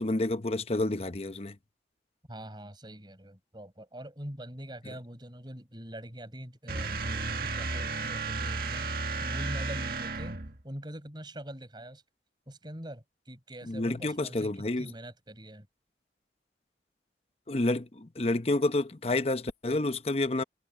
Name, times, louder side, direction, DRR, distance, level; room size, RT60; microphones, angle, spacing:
voice 1, 0.0-1.5 13.7-14.9 17.5-20.4, left 2 dB, 35° left, 0.8 m, -29 dB
voice 2, 2.3-10.4 10.6-12.0 12.5-15.7, right 1 dB, 25° right, 6.3 m, -43 dB
sound 1, 6.7-10.6, right 3 dB, 55° right, 1.8 m, -33 dB
head